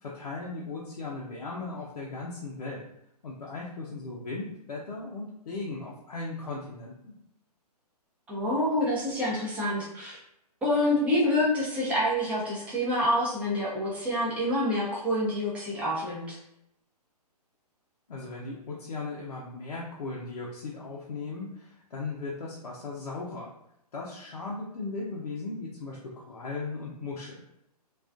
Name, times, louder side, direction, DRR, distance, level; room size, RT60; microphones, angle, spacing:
voice 1, 0.0-2.9 3.2-7.1 18.1-23.5 23.9-27.4, left 3 dB, 70° left, -4 dB, 0.5 m, -37 dB
voice 2, 8.3-10.2 10.6-16.4, left 1 dB, 5° right, -6 dB, 0.5 m, -27 dB
2.3 x 2.2 x 2.4 m, 0.79 s
figure-of-eight pair, 135°, 21 cm